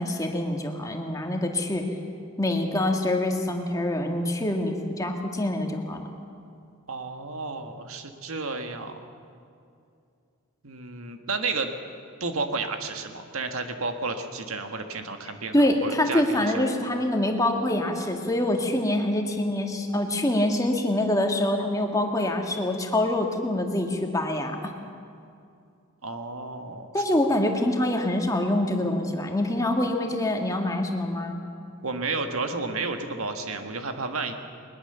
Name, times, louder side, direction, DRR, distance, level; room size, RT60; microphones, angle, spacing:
voice 1, 0.0-1.8 2.4-6.0 15.5-24.6 26.9-31.4, left 1 dB, 15° left, 3 dB, 1.9 m, -25 dB
voice 2, 6.9-9.0 10.6-11.7 12.2-16.7 26.0-26.9 28.5-28.6 31.8-34.3, right 3 dB, 80° right, 6 dB, 1.7 m, -32 dB
21.5 x 21.0 x 6.9 m, 2.4 s
head